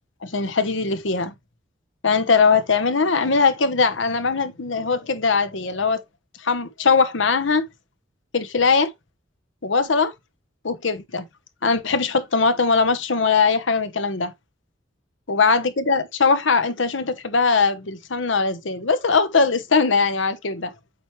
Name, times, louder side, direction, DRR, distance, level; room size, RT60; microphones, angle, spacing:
voice 1, 0.2-1.3 2.0-6.0 6.4-7.6 8.3-8.9 9.6-10.1 10.6-11.2 11.6-14.3 15.3-20.7, left 4 dB, 80° left, 1.0 m, -20 dB
7.9 x 4.6 x 3.1 m
head